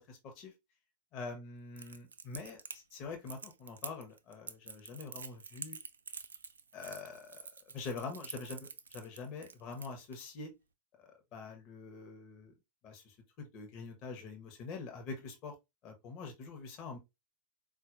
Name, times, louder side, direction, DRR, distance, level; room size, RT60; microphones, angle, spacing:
voice 1, 0.1-0.5 1.1-5.8 6.7-7.4 7.7-10.5 11.0-12.5 12.8-15.5 15.8-17.0, left 4 dB, 40° left, 1.0 m, -45 dB
Crackle, 1.8-10.2, right 5 dB, 70° right, 0.4 m, -47 dB
4.3 x 2.5 x 2.5 m
figure-of-eight pair, 90°, 0 cm